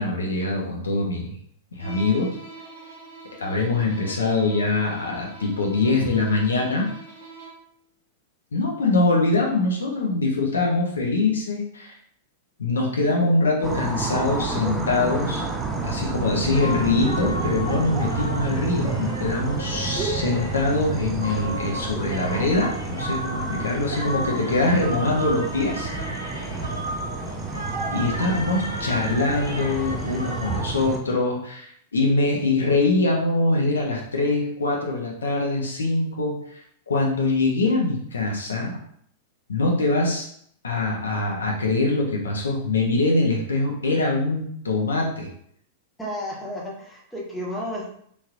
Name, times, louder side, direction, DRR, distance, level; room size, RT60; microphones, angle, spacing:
voice 1, 0.0-1.4 1.7-2.4 3.4-6.9 8.5-12.0 12.6-15.5 15.8-25.9 27.9-38.7 39.5-40.3 40.6-45.3, left 2 dB, 70° left, -1 dB, 0.7 m, -23 dB
Bowed string instrument, 1.8-7.7, right 3 dB, 55° right, 1.0 m, -43 dB
voice 2, 3.8-4.1 27.1-27.4 28.0-28.4 46.0-47.9, equal, 5° left, -4 dB, 1.0 m, -34 dB
sound 1, 13.6-31.0, right 3 dB, 15° right, 0.4 m, -30 dB
sound 2, 16.5-30.6, equal, 90° right, 0.6 m, -34 dB
3.1 x 2.8 x 2.5 m, 0.65 s
figure-of-eight pair, 95°, 0 cm